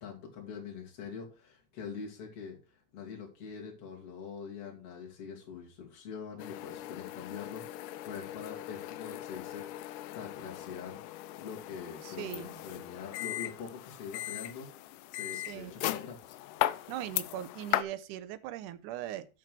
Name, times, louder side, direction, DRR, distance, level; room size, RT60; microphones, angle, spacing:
voice 1, 0.0-11.0 11.4-16.4, left 6 dB, 50° left, 3.3 m, -44 dB
sound 1, 6.4-17.8, left 15 dB, 85° left, 2.1 m, -38 dB
voice 2, 12.0-12.8 15.3-15.7 16.9-19.3, right 12 dB, 90° right, 2.2 m, -40 dB
7.4 x 6.0 x 6.0 m
omnidirectional pair, 3.6 m